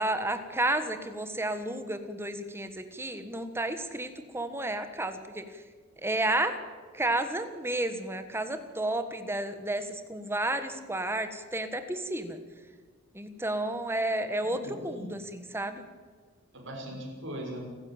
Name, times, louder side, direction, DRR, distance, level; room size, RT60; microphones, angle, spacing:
voice 1, 0.0-5.5 6.0-6.6 6.9-12.4 13.1-15.8, right 1 dB, 10° right, 9 dB, 1.5 m, -31 dB
voice 2, 14.4-15.2 16.5-17.6, equal, 60° right, -2 dB, 6.3 m, -40 dB
29.0 x 10.5 x 8.9 m, 1.5 s
head